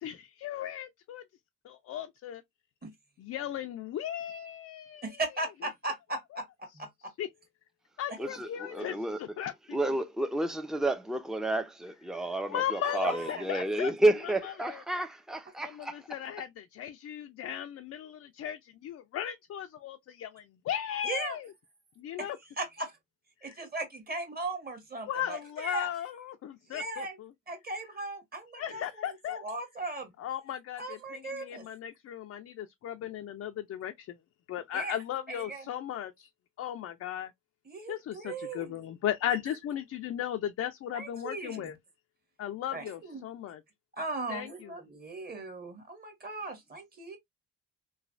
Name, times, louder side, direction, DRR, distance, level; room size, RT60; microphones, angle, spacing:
voice 1, 0.0-1.2 1.6-2.4 3.2-5.2 7.2-7.3 8.0-9.8 12.5-13.9 14.7-14.8 15.6-21.5 22.0-22.4 23.4-23.5 25.1-27.3 28.5-29.4 30.2-34.2 34.5-36.3 36.6-37.3 37.9-41.7 42.4-43.6 44.3-44.7, left 10 dB, 55° left, 0.5 m, -36 dB
voice 2, 5.0-6.4 6.7-6.9 8.1-8.2 12.8-13.5 21.0-21.4 22.6-22.9 23.4-25.9 26.7-27.2 27.5-30.1 30.8-31.7 34.7-35.0 35.3-35.7 37.6-38.7 40.9-41.7 42.7-43.2 44.0-47.2, right 2 dB, 30° right, 1.4 m, -38 dB
voice 3, 8.2-9.2 9.7-16.1, right 1 dB, ahead, 0.5 m, -30 dB
3.1 x 2.3 x 2.4 m
cardioid pair, 90°, 30 cm